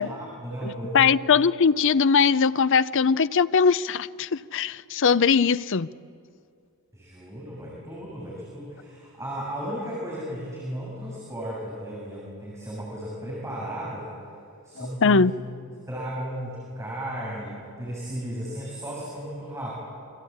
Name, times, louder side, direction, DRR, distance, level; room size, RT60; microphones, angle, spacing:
voice 1, 0.1-1.2 6.9-14.1 14.6-15.3 15.6-19.8, equal, 15° right, 7.3 m, -35 dB
voice 2, 0.6-5.9 15.0-15.3, left 5 dB, 60° left, 0.6 m, -21 dB
28.0 x 24.5 x 8.7 m
head